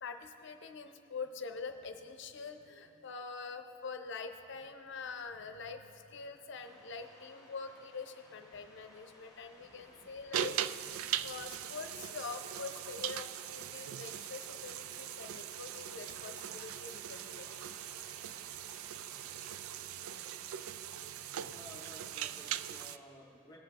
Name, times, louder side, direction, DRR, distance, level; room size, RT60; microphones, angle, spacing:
voice 1, 0.0-17.5 21.5-21.6, left 4 dB, 60° left, 7 dB, 0.6 m, -45 dB
sound 1, 6.5-19.8, left 1 dB, ahead, 2.2 m, -62 dB
sound 2, 8.9-22.8, right 3 dB, 35° right, 0.6 m, -62 dB
sound 3, 10.3-23.0, right 10 dB, 90° right, 0.3 m, -40 dB
voice 2, 21.5-23.6, left 1 dB, 15° left, -3 dB, 0.8 m, -54 dB
18.0 x 7.7 x 2.9 m, 2.8 s
head